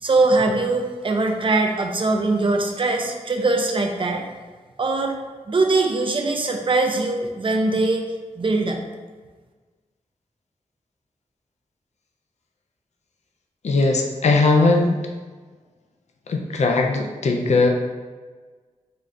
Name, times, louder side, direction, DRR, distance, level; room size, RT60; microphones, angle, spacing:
voice 1, 0.0-4.2 4.8-5.2 5.5-8.1 8.4-8.8, right 3 dB, 40° right, 3 dB, 0.5 m, -21 dB
voice 2, 13.6-15.0 16.3-17.7, left 3 dB, 60° left, 2 dB, 0.4 m, -19 dB
3.8 x 2.4 x 3.3 m, 1.4 s
wide cardioid pair, 80°, 13 cm